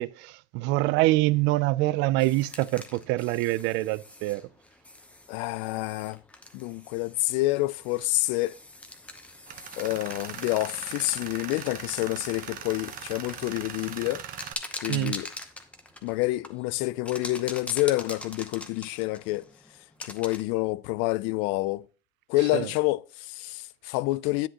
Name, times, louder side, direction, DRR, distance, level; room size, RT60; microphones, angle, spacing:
voice 1, 0.0-4.4 14.9-15.2 22.5-22.7, right 18 dB, 60° right, 0.4 m, -25 dB
sound 1, 2.2-20.4, left 1 dB, 5° left, 0.8 m, -44 dB
voice 2, 5.3-6.2 6.5-8.6 9.8-14.2 14.8-15.3 16.0-19.5 20.0-21.8 22.3-24.5, left 20 dB, 65° left, 0.4 m, -28 dB
Tools, 9.5-14.5, right 9 dB, 40° right, 0.9 m, -40 dB
10.0 x 7.8 x 2.9 m
cardioid pair, 135°, 21 cm